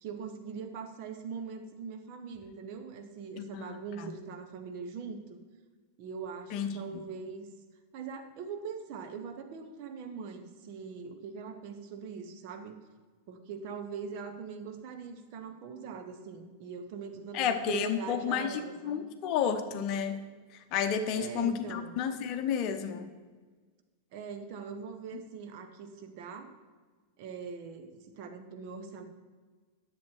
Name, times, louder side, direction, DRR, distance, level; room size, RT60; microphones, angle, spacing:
voice 1, 0.0-5.4 6.0-7.5 7.9-12.8 13.3-19.1 21.1-22.0 24.1-26.5 27.2-29.0, right 6 dB, 45° right, 6 dB, 1.1 m, -42 dB
voice 2, 3.4-3.7 4.0-4.1 6.5-7.0 17.3-20.2 20.7-23.1, left 7 dB, 40° left, 8 dB, 0.8 m, -31 dB
10.5 x 7.3 x 4.4 m, 1.4 s
figure-of-eight pair, 90°, 0 cm